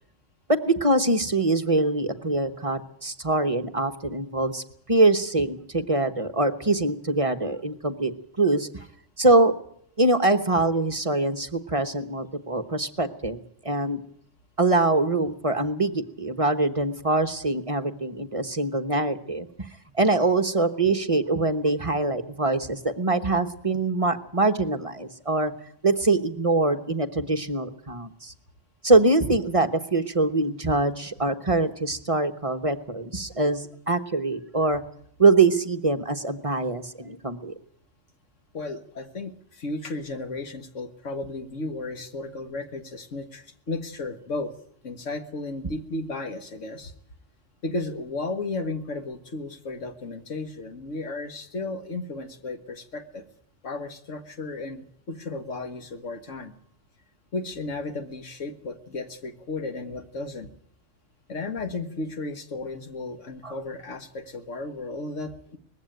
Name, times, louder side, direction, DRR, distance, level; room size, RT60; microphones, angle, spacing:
voice 1, 0.5-4.6 4.9-8.1 8.4-8.9 9.2-9.5 10.0-14.0 14.6-19.5 19.9-25.5 25.8-28.3 28.8-34.8 35.2-37.5 63.4-63.5, right 2 dB, 30° right, 7 dB, 1.1 m, -23 dB
voice 2, 38.5-44.5 44.8-46.9 47.6-53.2 53.6-56.5 57.3-60.5 61.3-65.6, left 2 dB, 90° left, 7 dB, 2.0 m, -34 dB
20.5 x 15.5 x 9.2 m, 0.68 s
omnidirectional pair, 1.2 m